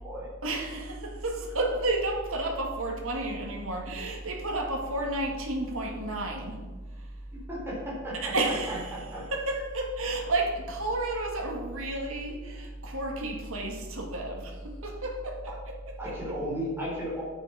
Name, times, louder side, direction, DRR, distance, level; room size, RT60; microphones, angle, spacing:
voice 1, 0.4-6.6 6.9-7.1 8.2-9.1 9.3-15.5 16.0-16.1, right 2 dB, 65° right, 1 dB, 2.2 m, -31 dB
voice 2, 7.5-8.1 8.7-9.2 16.0-17.2, equal, 10° right, -6 dB, 4.0 m, -34 dB
9.8 x 8.4 x 5.9 m, 1.3 s
head